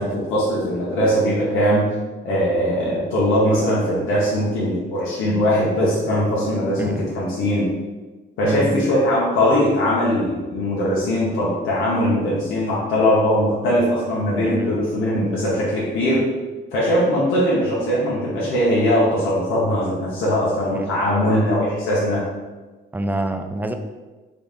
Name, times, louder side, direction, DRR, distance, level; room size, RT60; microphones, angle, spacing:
voice 1, 0.0-1.9 2.2-7.8 8.4-16.2 16.7-22.3, equal, 90° left, -7 dB, 0.9 m, -20 dB
voice 2, 6.8-7.1 8.4-8.8 14.4-14.7 15.1-15.3 20.7-20.9 22.9-23.7, right 1 dB, 10° right, 6 dB, 0.3 m, -26 dB
3.9 x 2.4 x 3.5 m, 1.3 s
cardioid pair, 90°, 20 cm